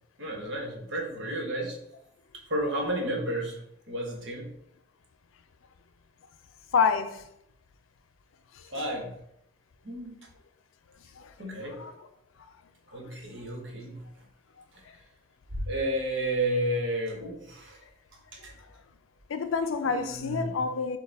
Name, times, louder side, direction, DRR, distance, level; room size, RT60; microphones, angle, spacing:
voice 1, 0.2-1.8 2.3-3.6 3.9-4.5 8.7-9.2 9.8-10.2 11.4-11.8 12.9-14.1 14.7-14.8 15.5-17.8 18.3-18.5 19.8-20.6, right 1 dB, 65° right, 1.1 m, -32 dB
voice 2, 6.7-7.2 11.2-11.3 11.8-11.9 19.3-21.0, left 5 dB, 85° left, 0.4 m, -27 dB
6.4 x 2.3 x 3.4 m
head